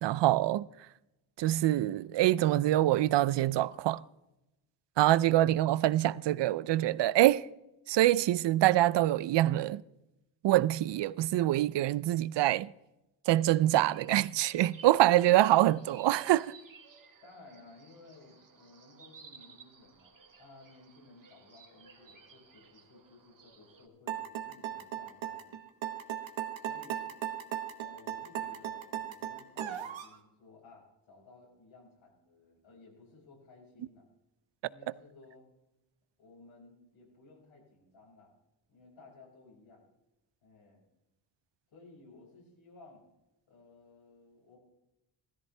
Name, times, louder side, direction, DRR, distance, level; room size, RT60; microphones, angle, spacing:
voice 1, 0.0-0.7 1.4-4.0 5.0-7.5 7.9-9.8 10.4-12.7 13.3-16.5, right 14 dB, 65° right, 0.5 m, -25 dB
sound 1, 13.5-23.9, right 5 dB, 45° right, 1.9 m, -56 dB
voice 2, 17.2-25.6 26.6-27.1 27.8-34.1 34.6-35.4 36.2-38.3 38.7-39.9 40.4-40.8 41.7-43.0 43.5-44.6, left 3 dB, 85° left, 5.7 m, -57 dB
sound 2, 24.1-30.1, right 10 dB, 85° right, 1.3 m, -37 dB
16.0 x 14.0 x 3.3 m
cardioid pair, 110°, 45 cm